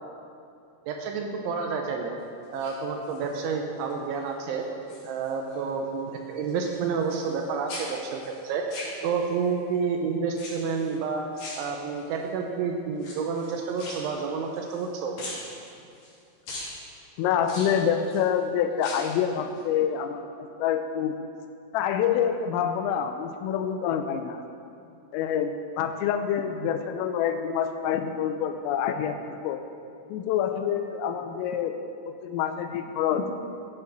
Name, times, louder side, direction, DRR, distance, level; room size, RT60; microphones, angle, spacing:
voice 1, 0.9-2.1 2.5-4.6 5.0-8.6 9.0-11.2 11.6-15.1, right 5 dB, 80° right, 2 dB, 2.9 m, -29 dB
sound 1, 2.4-3.4 3.9-4.3 4.6-5.6 5.9-7.4 7.7-9.5 10.3-10.9 11.3-12.2 12.9-14.9 15.2-16.1 16.5-16.7 17.4-18.2 18.7-19.2 19.5-19.6, left 2 dB, 45° left, 3.4 m, -41 dB
voice 2, 17.2-20.3 20.6-21.2 21.7-24.4 25.1-29.6 30.1-31.7 32.1-33.3, left 8 dB, 85° left, 7 dB, 3.3 m, -27 dB
14.5 x 9.0 x 4.1 m, 2.5 s
omnidirectional pair, 5.9 m